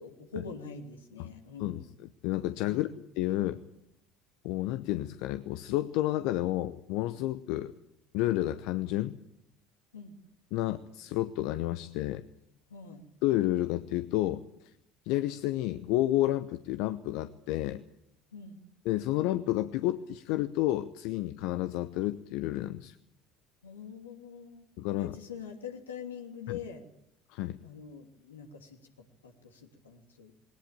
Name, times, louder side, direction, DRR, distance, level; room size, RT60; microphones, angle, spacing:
voice 1, 0.0-1.8 2.6-2.9 9.9-10.2 12.7-13.0 18.3-18.6 23.6-24.7 25.0-26.8 27.6-28.8 29.2-30.3, left 6 dB, 80° left, 3 dB, 2.9 m, -44 dB
voice 2, 2.2-2.9 3.2-3.6 4.4-7.7 8.1-9.2 10.5-12.2 13.2-14.4 15.1-17.8 18.8-23.0 24.8-25.1 26.5-26.6 27.3-27.6, left 15 dB, 65° left, 12 dB, 0.8 m, -30 dB
20.5 x 19.5 x 8.9 m, 0.76 s
figure-of-eight pair, 60°, 0 cm